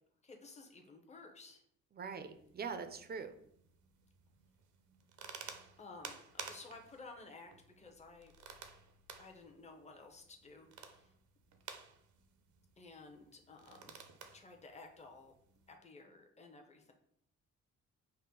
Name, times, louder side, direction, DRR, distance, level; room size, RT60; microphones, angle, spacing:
voice 1, 0.2-1.6 5.8-8.3 9.2-11.1 12.8-14.0 14.3-15.3 15.7-16.9, left 3 dB, 20° left, 3 dB, 0.8 m, -55 dB
voice 2, 1.9-3.3, right 5 dB, 35° right, 9 dB, 0.5 m, -43 dB
sound 1, 2.2-15.8, right 6 dB, 75° right, 0.7 m, -54 dB
5.5 x 2.1 x 3.8 m, 0.68 s
cardioid pair, 90°, 30 cm